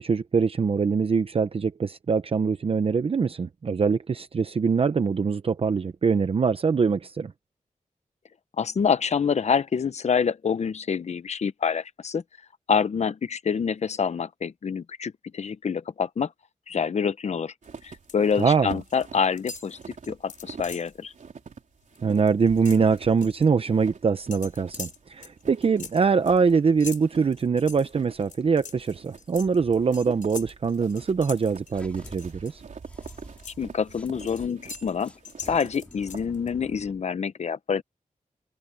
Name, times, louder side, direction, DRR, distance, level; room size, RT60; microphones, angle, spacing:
voice 1, 0.0-7.3 18.4-18.8 22.0-32.6, right 5 dB, 45° right, 0.7 m, -23 dB
voice 2, 8.6-12.2 12.7-16.3 16.7-17.5 17.8-21.1 33.6-35.1 35.4-37.8, left 6 dB, 55° left, 0.9 m, -26 dB
sound 1, 17.6-18.3 18.6-19.1 19.4-21.0 21.4-21.5 21.8-23.5 24.3-32.5 32.9-36.5, left 5 dB, 70° left, 5.1 m, -43 dB
sound 2, 17.6-36.8, right 5 dB, 65° right, 3.9 m, -46 dB
sound 3, 31.7-34.5 35.0-37.1, left 1 dB, 10° left, 3.5 m, -49 dB
wide cardioid pair, 175°, 14 cm